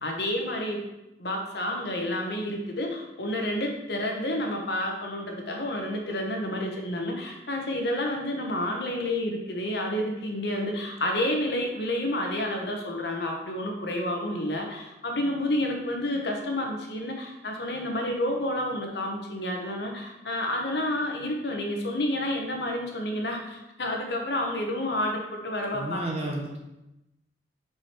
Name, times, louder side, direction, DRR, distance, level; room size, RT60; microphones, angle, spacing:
voice 1, 0.0-0.8 1.2-26.0, left 1 dB, 65° left, 1 dB, 1.0 m, -30 dB
voice 2, 25.7-26.6, right 1 dB, 35° right, -1 dB, 1.1 m, -32 dB
4.9 x 4.8 x 4.4 m, 0.95 s
head